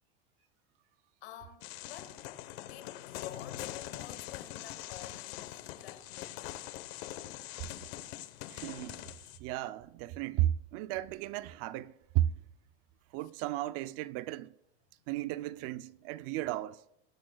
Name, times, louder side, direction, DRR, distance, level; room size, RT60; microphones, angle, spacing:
voice 1, 1.2-2.2 2.6-6.7, left 11 dB, 85° left, 1.9 m, -50 dB
sound 1, 1.6-9.4, left 14 dB, 70° left, 1.1 m, -43 dB
voice 2, 8.5-9.1 9.4-12.4 13.1-14.5 15.1-16.8, right 13 dB, 45° right, 0.5 m, -34 dB
20.0 x 11.0 x 2.3 m
supercardioid pair, 145°, 32 cm